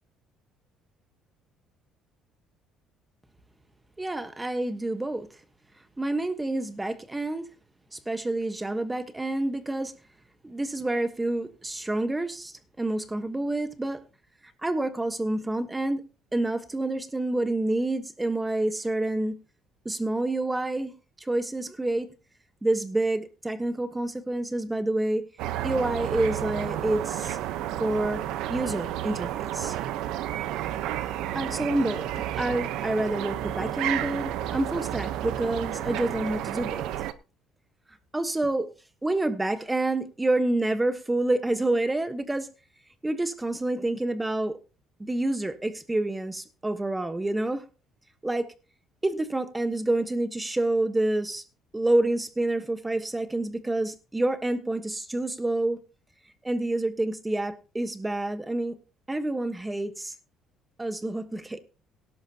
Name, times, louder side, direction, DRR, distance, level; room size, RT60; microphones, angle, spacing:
voice 1, 4.0-5.3 6.0-7.5 7.9-9.9 10.4-14.0 14.6-19.4 19.8-22.1 22.6-25.2 25.6-27.4 27.8-28.2 28.5-29.8 31.3-32.1 32.3-36.8 38.1-38.7 39.0-42.5 43.0-44.6 45.0-47.7 48.2-48.5 49.0-51.4 51.7-55.8 56.4-58.8 59.1-60.1 60.8-61.6, right 2 dB, 10° right, 1.3 m, -28 dB
sound 1, 25.4-37.1, right 12 dB, 75° right, 0.9 m, -31 dB
17.5 x 12.0 x 2.9 m
cardioid pair, 140°, 0 cm